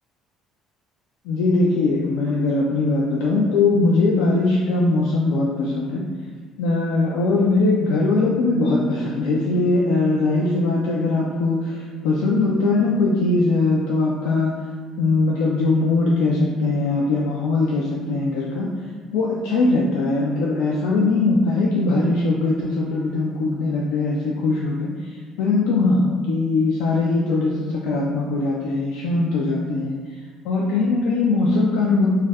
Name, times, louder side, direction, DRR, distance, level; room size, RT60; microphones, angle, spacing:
voice 1, 1.2-6.0 6.6-14.5 15.0-18.7 19.1-30.0 30.4-32.1, left 3 dB, 70° left, -4 dB, 0.3 m, -21 dB
2.6 x 2.2 x 3.3 m, 1.5 s
hypercardioid pair, 55°, 0 cm